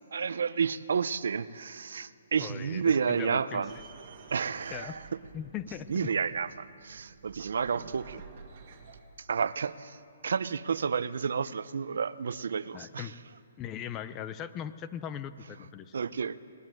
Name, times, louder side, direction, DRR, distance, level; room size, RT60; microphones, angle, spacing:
voice 1, 0.0-3.7 4.3-5.0 5.9-8.2 9.2-13.1 15.9-16.4, right 6 dB, 60° right, 16 dB, 0.7 m, -31 dB
voice 2, 2.4-3.8 4.7-5.0 5.3-5.9 12.7-13.2 13.6-16.0, left 9 dB, 15° left, 13 dB, 0.5 m, -39 dB
sound 1, 3.7-9.0, right 6 dB, 30° right, 1.8 m, -51 dB
20.0 x 18.5 x 9.2 m, 2.4 s
hypercardioid pair, 180°, 0 cm